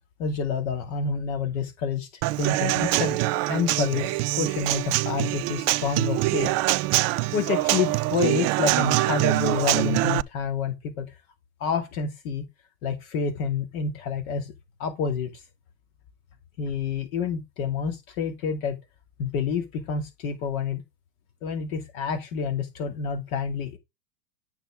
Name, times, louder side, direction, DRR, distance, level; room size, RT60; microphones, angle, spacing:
voice 1, 0.2-2.1 2.4-3.2 3.5-6.5 7.3-11.1 11.6-12.4 12.8-14.5 14.8-15.4 16.6-18.8 19.2-20.8 21.4-23.8, left 5 dB, 55° left, 2.4 m, -28 dB
Human voice / Acoustic guitar / Drum, 2.2-10.2, right 18 dB, 35° right, 0.6 m, -24 dB
12.0 x 7.1 x 3.6 m
hypercardioid pair, 100°, 49 cm